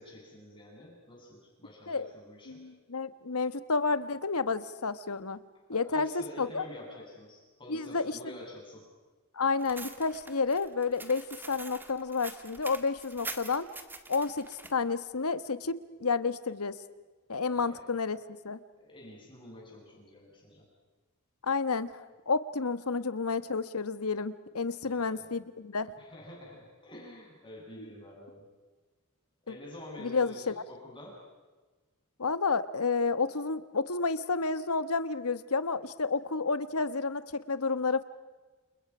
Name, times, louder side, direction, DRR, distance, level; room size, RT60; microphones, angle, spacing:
voice 1, 0.0-2.6 5.7-8.9 17.5-17.8 18.8-20.7 24.8-25.3 26.0-28.5 29.4-31.1, left 1 dB, 20° left, -2 dB, 8.0 m, -48 dB
voice 2, 2.5-5.4 5.7-6.1 6.4-6.6 7.7-8.0 9.3-13.7 14.1-16.8 17.3-18.6 21.4-25.9 27.8-27.9 30.0-30.5 32.2-38.0, left 4 dB, 90° left, 13 dB, 1.2 m, -30 dB
sound 1, 9.6-14.7, right 3 dB, 10° right, 1.8 m, -44 dB
29.5 x 28.5 x 6.1 m, 1.3 s
head